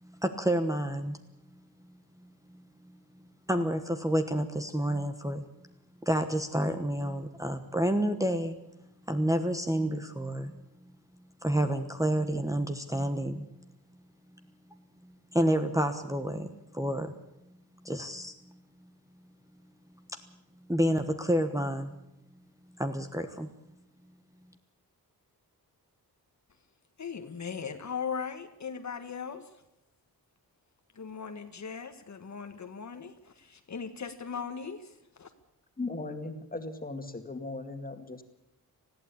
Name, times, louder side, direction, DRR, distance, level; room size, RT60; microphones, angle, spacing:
voice 1, 0.0-1.2 1.5-1.6 2.5-2.6 3.5-5.4 6.0-8.5 9.1-10.5 11.4-13.4 15.0-16.5 16.7-17.1 17.8-18.6 20.1-20.2 20.7-21.9 22.8-23.5, equal, 10° right, 1.2 m, -29 dB
voice 2, 27.0-29.5 30.9-35.3, left 6 dB, 45° left, 1.4 m, -39 dB
voice 3, 35.8-38.2, left 2 dB, 25° left, 2.2 m, -37 dB
20.0 x 15.0 x 8.6 m
wide cardioid pair, 130°, 37 cm